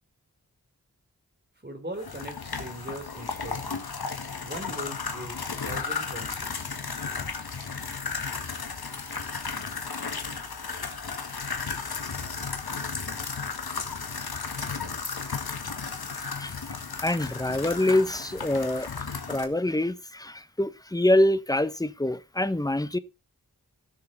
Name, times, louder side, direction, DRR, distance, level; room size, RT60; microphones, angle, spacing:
voice 1, 1.6-3.9 4.4-6.8, right 1 dB, 30° right, 3.8 m, -40 dB
sound 1, 2.0-19.4, left 5 dB, 85° left, 1.9 m, -34 dB
voice 2, 16.4-18.9 19.3-23.0, left 1 dB, 10° left, 1.0 m, -25 dB
16.0 x 6.7 x 4.1 m
wide cardioid pair, 50°, 36 cm